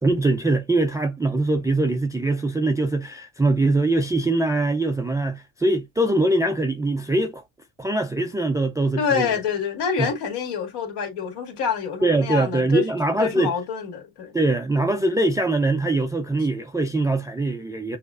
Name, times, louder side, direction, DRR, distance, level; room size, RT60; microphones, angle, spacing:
voice 1, 0.0-7.4 7.8-9.3 10.0-10.1 12.0-13.5 14.3-18.0, right 2 dB, 5° right, 0.4 m, -22 dB
voice 2, 9.0-12.9 13.2-14.3, left 6 dB, 55° left, 2.0 m, -26 dB
6.3 x 2.5 x 2.4 m
hypercardioid pair, 80°, 48 cm